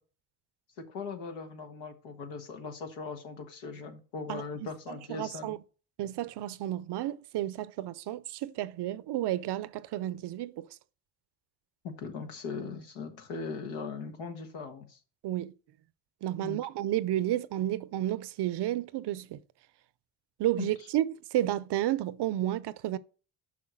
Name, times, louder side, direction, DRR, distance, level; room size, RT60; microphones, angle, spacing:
voice 1, 0.9-5.5 11.8-15.0 16.4-16.6 20.6-20.7, left 5 dB, 80° left, 1.6 m, -39 dB
voice 2, 4.9-5.6 6.0-10.7 15.2-15.5 16.2-19.4 20.4-23.0, right 13 dB, 65° right, 0.6 m, -31 dB
5.9 x 5.6 x 6.3 m
supercardioid pair, 60°, 44 cm